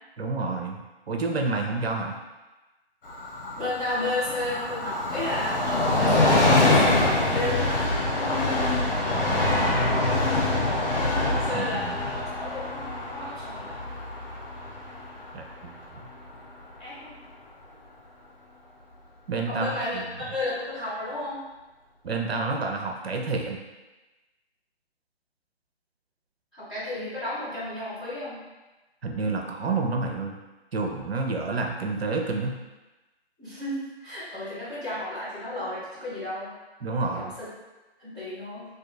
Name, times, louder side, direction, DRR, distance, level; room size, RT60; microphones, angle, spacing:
voice 1, 0.2-0.8 1.1-2.2 9.1-9.9 11.5-12.0 15.3-16.1 19.3-20.0 22.0-23.6 29.0-30.4 30.7-32.6 36.8-37.3, right 3 dB, 70° right, 2 dB, 0.6 m, -29 dB
Train, 3.0-16.4 16.7-16.8, left 2 dB, 55° left, 0.8 m, -25 dB
voice 2, 3.6-7.8 11.4-13.8 16.8-17.2 19.5-21.4 26.5-28.4 33.4-36.5 37.1-37.5 38.0-38.7, left 2 dB, 5° left, -19 dB, 0.5 m, -32 dB
3.7 x 2.6 x 2.2 m, 1.1 s
figure-of-eight pair, 145°, 32 cm